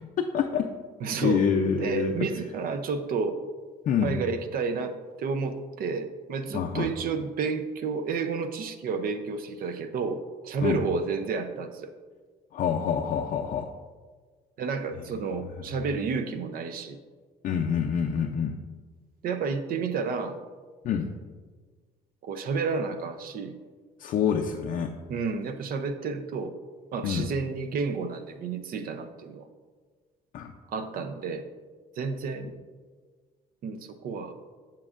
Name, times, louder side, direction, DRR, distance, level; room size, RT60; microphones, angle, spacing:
voice 1, 0.3-0.6 1.2-2.1 3.9-4.2 6.5-6.9 10.6-10.8 12.5-13.7 17.4-18.5 20.8-21.1 24.0-24.9 27.0-27.2 30.3-30.5, left 7 dB, 50° left, 2 dB, 0.5 m, -26 dB
voice 2, 1.0-1.4 1.7-3.4 4.0-11.9 14.6-17.0 19.2-20.4 22.2-23.5 25.1-26.5 26.9-29.5 30.7-31.4 32.0-32.5 33.6-34.3, right 5 dB, 60° right, 9 dB, 0.6 m, -31 dB
7.5 x 7.1 x 2.5 m, 1.5 s
cardioid pair, 110°, 17 cm